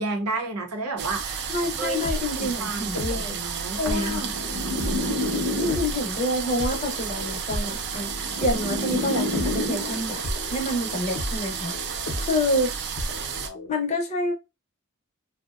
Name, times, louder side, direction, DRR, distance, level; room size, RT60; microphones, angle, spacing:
voice 1, 0.0-4.3, right 3 dB, 90° right, 0.7 m, -31 dB
sound 1, 1.0-13.5, right 7 dB, 50° right, 0.4 m, -32 dB
sound 2, 1.5-3.4 3.8-13.7, left 1 dB, 75° left, 0.6 m, -35 dB
voice 2, 1.5-3.3 3.8-4.3 5.6-8.1 8.4-10.2 10.5-11.7 12.2-12.7 13.7-14.3, left 1 dB, 30° left, 0.6 m, -27 dB
sound 3, 3.8-6.2 7.2-10.2, left 2 dB, 30° right, 0.8 m, -30 dB
2.6 x 2.1 x 2.3 m
head